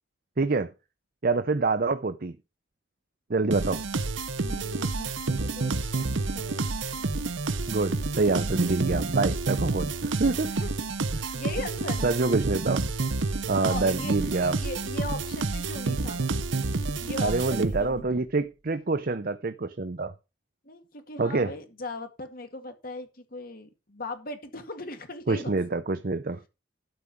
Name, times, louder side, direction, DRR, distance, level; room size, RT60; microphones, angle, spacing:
voice 1, 0.4-0.7 1.2-2.3 3.3-3.8 7.7-10.5 11.1-11.3 12.0-12.8 13.5-14.6 17.2-20.1 21.2-21.5 25.3-26.4, right 3 dB, 45° right, 0.6 m, -26 dB
sound 1, 3.5-18.1, right 3 dB, 75° right, 0.9 m, -29 dB
voice 2, 4.4-7.1 10.5-10.7 11.1-12.1 13.6-14.1 14.5-16.2 17.0-18.3 20.6-25.8 26.3-26.4, left 2 dB, 50° left, 2.1 m, -39 dB
12.5 x 4.9 x 7.1 m
head